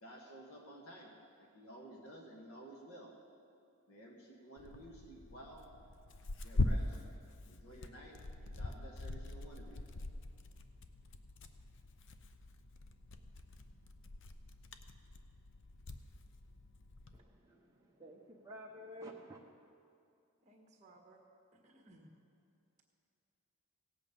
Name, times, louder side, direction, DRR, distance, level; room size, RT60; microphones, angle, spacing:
voice 1, 0.0-3.1 3.9-5.7 6.4-7.0 7.5-9.8, right 1 dB, 70° left, -1 dB, 1.6 m, -53 dB
Tearing, 4.6-17.2, left 2 dB, 55° left, 0.6 m, -42 dB
voice 2, 17.1-19.4, equal, 15° right, -4 dB, 0.8 m, -51 dB
voice 3, 20.5-21.2 21.6-22.1, right 2 dB, 30° right, 1 dB, 1.5 m, -61 dB
17.0 x 8.2 x 5.3 m, 2.6 s
head